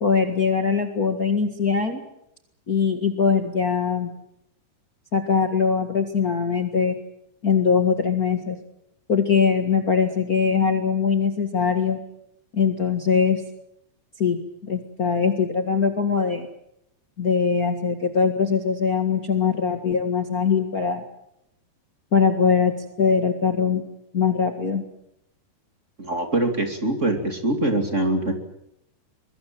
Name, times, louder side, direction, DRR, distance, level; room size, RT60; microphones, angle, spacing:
voice 1, 0.0-2.0 2.7-4.1 5.1-6.9 7.4-8.6 9.1-12.0 12.5-13.4 14.2-14.4 14.7-16.5 17.2-21.0 22.1-22.7 23.0-23.8 24.1-24.8, left 6 dB, 75° left, 4 dB, 0.8 m, -21 dB
voice 2, 26.0-28.3, right 1 dB, 25° right, 5 dB, 2.1 m, -23 dB
23.5 x 22.5 x 7.6 m, 0.80 s
omnidirectional pair, 4.8 m